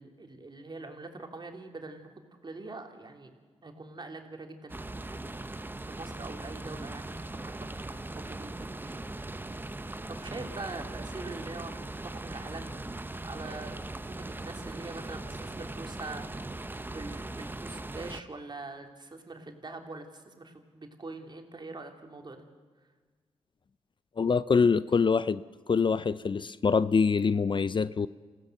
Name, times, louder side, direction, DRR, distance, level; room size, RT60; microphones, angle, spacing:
voice 1, 0.0-2.1 2.4-3.3 3.6-9.0 10.1-22.4, right 3 dB, 40° right, 4 dB, 3.2 m, -44 dB
sound 1, 4.7-18.2, right 2 dB, 15° right, 0.9 m, -40 dB
voice 2, 24.2-28.1, left 5 dB, 45° left, 16 dB, 0.6 m, -25 dB
27.0 x 16.0 x 7.9 m, 1.5 s
cardioid pair, 60°, 12 cm